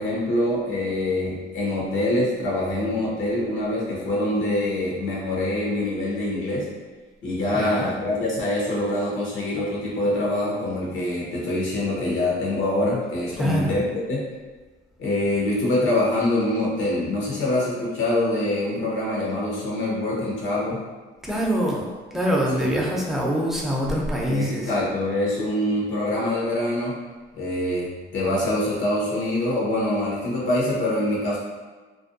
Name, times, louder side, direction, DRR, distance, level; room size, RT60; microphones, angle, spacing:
voice 1, 0.0-6.6 7.2-14.3 15.0-20.8 22.6-22.7 24.3-27.0 27.4-31.4, left 1 dB, 80° left, -5 dB, 0.9 m, -25 dB
voice 2, 7.5-7.9 13.4-13.7 21.2-24.7, equal, ahead, -4 dB, 0.5 m, -24 dB
2.5 x 2.1 x 2.5 m, 1.3 s
cardioid pair, 90°, 20 cm